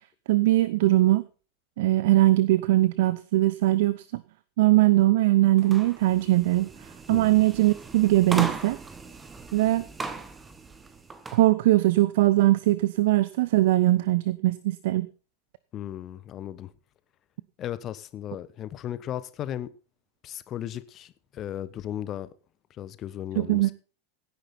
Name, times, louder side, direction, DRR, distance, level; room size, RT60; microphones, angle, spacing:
voice 1, 0.3-1.2 1.8-4.2 4.6-6.7 7.1-8.8 9.5-9.9 11.3-15.1 23.4-23.7, right 16 dB, 50° right, 0.7 m, -21 dB
sound 1, 5.6-11.4, right 3 dB, 15° right, 1.6 m, -37 dB
voice 2, 7.1-7.4 15.7-16.7 17.6-19.7 20.2-22.3 22.8-23.7, left 11 dB, 30° left, 1.1 m, -36 dB
17.0 x 10.0 x 4.2 m
figure-of-eight pair, 90°, 0 cm